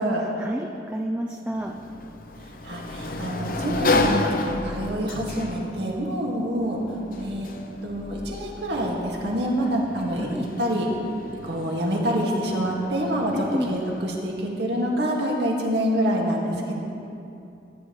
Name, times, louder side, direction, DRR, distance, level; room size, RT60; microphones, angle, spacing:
voice 1, 0.4-1.7 10.2-10.5 13.3-13.7, equal, 10° right, 1 dB, 0.5 m, -29 dB
Sliding door, 1.5-14.2, left 2 dB, 50° left, 0.7 m, -32 dB
voice 2, 2.6-6.8 7.2-7.5 7.8-10.9 11.4-16.7, equal, 75° right, -2 dB, 2.1 m, -26 dB
22.0 x 11.0 x 3.2 m, 2.7 s
head